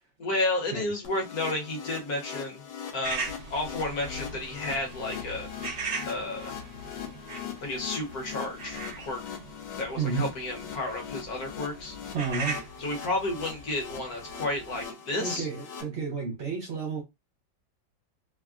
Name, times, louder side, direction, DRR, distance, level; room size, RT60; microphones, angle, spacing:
voice 1, 0.2-2.6 2.9-5.5 6.0-6.5 7.6-9.4 9.8-11.9 12.8-15.5, left 2 dB, 60° left, 1.2 m, -32 dB
sound 1, 1.0-15.8, left 8 dB, 75° left, 1.4 m, -41 dB
sound 2, 3.0-14.8, right 3 dB, 50° right, 1.0 m, -40 dB
voice 2, 10.0-10.3 12.1-12.6 15.2-17.0, right 5 dB, 70° right, 0.6 m, -31 dB
3.4 x 2.1 x 2.3 m
omnidirectional pair, 2.0 m